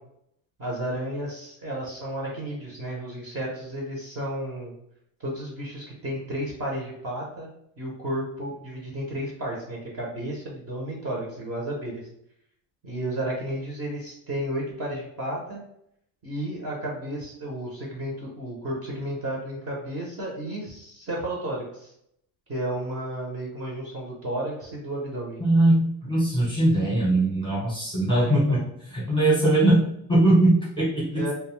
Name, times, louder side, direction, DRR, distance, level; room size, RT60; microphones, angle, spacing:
voice 1, 0.6-4.7 5.2-7.5 7.8-12.0 12.8-15.6 16.2-21.9 22.5-25.4 28.1-28.6 31.1-31.3, right 1 dB, 30° right, -3 dB, 0.7 m, -32 dB
voice 2, 25.4-28.6 28.9-29.8 30.1-31.2, right 1 dB, 10° left, -5 dB, 0.8 m, -21 dB
2.5 x 2.2 x 3.1 m, 0.73 s
cardioid pair, 145°, 50 cm